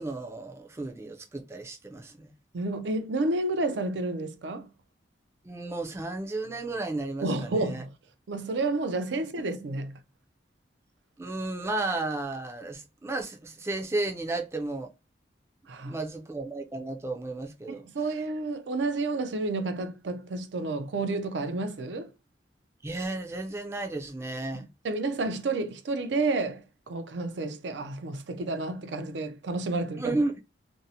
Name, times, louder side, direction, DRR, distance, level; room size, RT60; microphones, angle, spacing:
voice 1, 0.0-2.3 5.4-7.8 11.2-14.9 15.8-17.9 22.8-24.7 30.0-30.4, right 2 dB, 15° right, 0.3 m, -33 dB
voice 2, 2.5-4.7 7.2-7.9 8.3-10.0 15.7-15.9 17.7-22.1 24.5-30.2, right 2 dB, 80° right, 0.5 m, -30 dB
2.6 x 2.0 x 2.7 m
head